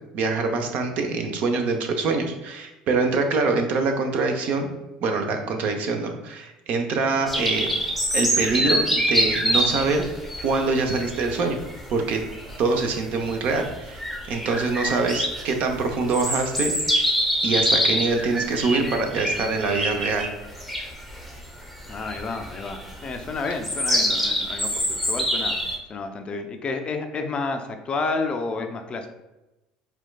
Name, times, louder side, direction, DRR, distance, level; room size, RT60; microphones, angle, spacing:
voice 1, 0.1-4.7 5.0-7.7 8.1-10.0 10.4-11.6 11.9-12.2 12.6-14.0 14.3-17.1 17.4-20.3, right 3 dB, 55° right, 4 dB, 0.5 m, -24 dB
sound 1, 7.3-25.8, equal, ahead, 0.7 m, -26 dB
voice 2, 21.9-25.6 25.9-29.1, left 3 dB, 35° left, 6 dB, 0.4 m, -30 dB
4.3 x 2.2 x 2.2 m, 0.99 s
hypercardioid pair, 70°, 3 cm